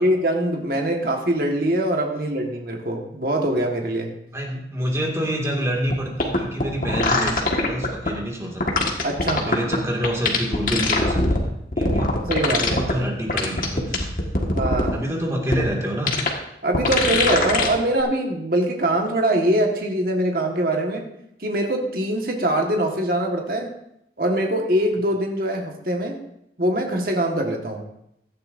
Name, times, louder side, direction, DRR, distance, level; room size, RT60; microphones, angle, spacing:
voice 1, 0.0-4.1 9.0-9.5 11.8-11.9 12.3-12.8 14.5-15.0 16.6-21.1 21.4-23.7 24.2-26.2 26.6-27.8, right 1 dB, 55° right, 1 dB, 1.6 m, -23 dB
voice 2, 4.3-8.8 9.3-12.1 12.5-14.2 14.9-16.1, equal, 15° right, -1 dB, 2.2 m, -27 dB
sound 1, 5.9-6.0 6.2-8.1 8.6-9.8 10.0-11.4 11.7-12.9 13.3-14.9 15.5-15.6 16.1-16.3 16.7-17.7 18.0-18.1, left 2 dB, 50° left, 1.7 m, -21 dB
16.5 x 12.0 x 2.7 m, 0.78 s
head